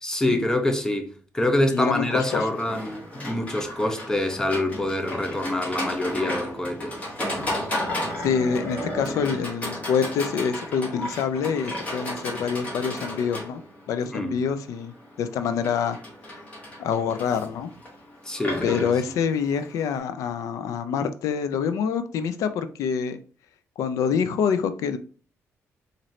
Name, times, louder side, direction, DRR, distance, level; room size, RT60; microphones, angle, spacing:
voice 1, 0.0-7.0 14.1-14.3 18.2-18.9, left 1 dB, 10° left, 0.5 m, -26 dB
voice 2, 1.7-2.5 8.2-13.6 13.9-16.0 16.8-17.7 18.6-23.2 23.8-25.0, left 6 dB, 85° left, 0.4 m, -26 dB
Livestock farm animals working animals, 1.9-20.0, left 1 dB, 25° left, 1.4 m, -34 dB
4.1 x 2.6 x 3.1 m
cardioid pair, 130°, 5 cm